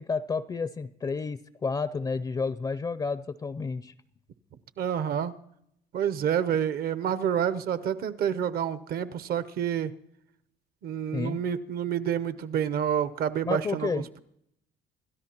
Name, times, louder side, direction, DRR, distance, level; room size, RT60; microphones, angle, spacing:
voice 1, 0.0-3.9 11.1-11.4 13.4-14.1, left 4 dB, 25° left, 15 dB, 0.4 m, -31 dB
voice 2, 4.8-5.3 5.9-9.9 10.8-14.2, right 9 dB, 65° right, 14 dB, 0.8 m, -28 dB
27.0 x 13.0 x 2.9 m, 0.77 s
cardioid pair, 110°, 17 cm